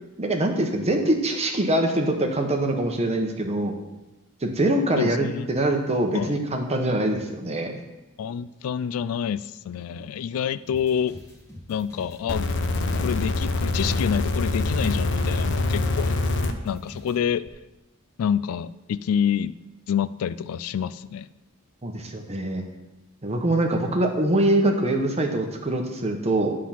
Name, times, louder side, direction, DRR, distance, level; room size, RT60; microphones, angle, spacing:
voice 1, 0.2-3.7 4.4-7.7 21.8-22.6 23.2-26.6, right 1 dB, 30° right, 3 dB, 1.0 m, -24 dB
voice 2, 5.0-5.5 6.1-6.4 8.2-11.2 11.7-12.5 13.0-16.2 16.6-17.4 18.2-19.5 19.9-21.3, left 8 dB, 75° left, 16 dB, 0.3 m, -27 dB
sound 1, 10.7-17.2, left 1 dB, 15° left, 1.5 m, -44 dB
sound 2, 12.3-16.5 17.5-17.6, left 2 dB, 55° left, 0.7 m, -25 dB
11.0 x 3.8 x 5.8 m, 1.0 s
head